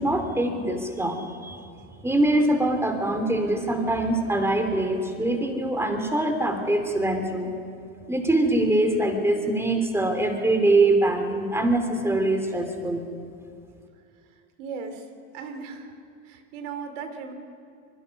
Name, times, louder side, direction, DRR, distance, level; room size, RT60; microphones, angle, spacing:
voice 1, 0.0-1.6 2.0-7.5 8.1-13.0, right 2 dB, 5° right, 5 dB, 3.0 m, -23 dB
voice 2, 14.6-15.1 15.3-16.0 16.2-17.3, right 5 dB, 75° right, 6 dB, 3.0 m, -36 dB
25.5 x 21.5 x 5.4 m, 2.4 s
supercardioid pair, 110°, 37 cm